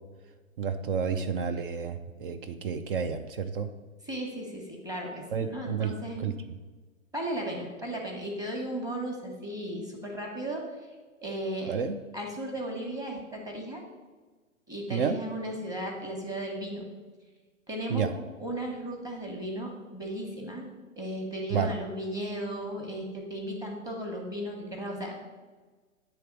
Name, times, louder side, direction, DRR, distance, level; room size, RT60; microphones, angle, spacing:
voice 1, 0.6-3.7 5.3-5.9 6.2-6.3 11.7-11.9 14.9-15.2 17.9-18.1 21.5-21.7, right 6 dB, 45° right, 9 dB, 0.5 m, -30 dB
voice 2, 4.0-6.3 7.1-10.7 11.2-11.7 12.1-13.8 14.7-16.9 17.7-20.7 21.0-25.3, right 1 dB, 10° right, 0 dB, 1.2 m, -35 dB
8.9 x 3.4 x 5.2 m, 1.3 s
hypercardioid pair, 120°, 41 cm